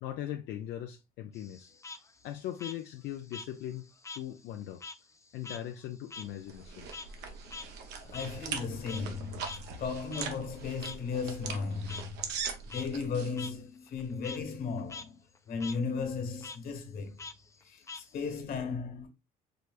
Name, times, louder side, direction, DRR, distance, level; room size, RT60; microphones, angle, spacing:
voice 1, 0.0-1.7 2.2-3.9 4.1-4.8 5.3-6.9, left 11 dB, 85° left, 0.5 m, -39 dB
Frog, 1.3-4.3 4.6-9.2 9.4-9.6 10.1-10.3 10.8-11.0 11.9-12.0 12.5-12.9 13.4-13.5 13.9-14.4 14.8-15.0 15.3-15.8 16.4-16.6 17.2-18.4, left 4 dB, 15° left, 0.4 m, -44 dB
sound 1, 6.2-13.3, right 6 dB, 90° right, 1.0 m, -41 dB
voice 2, 8.0-12.2 12.7-15.2 15.5-17.2 17.6-19.1, left 5 dB, 60° left, 1.5 m, -35 dB
4.9 x 3.2 x 2.3 m
cardioid pair, 110°, 17 cm